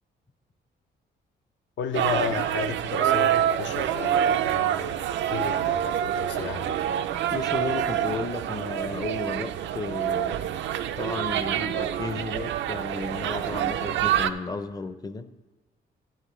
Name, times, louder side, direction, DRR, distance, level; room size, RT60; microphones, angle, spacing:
voice 1, 1.8-5.0 5.3-6.8, left 7 dB, 85° left, 0.7 m, -33 dB
sound 1, 1.9-14.3, right 10 dB, 80° right, 0.4 m, -26 dB
voice 2, 7.3-10.4 11.0-15.3, left 4 dB, 20° left, 0.5 m, -34 dB
11.5 x 9.8 x 3.1 m
cardioid pair, 105°, 19 cm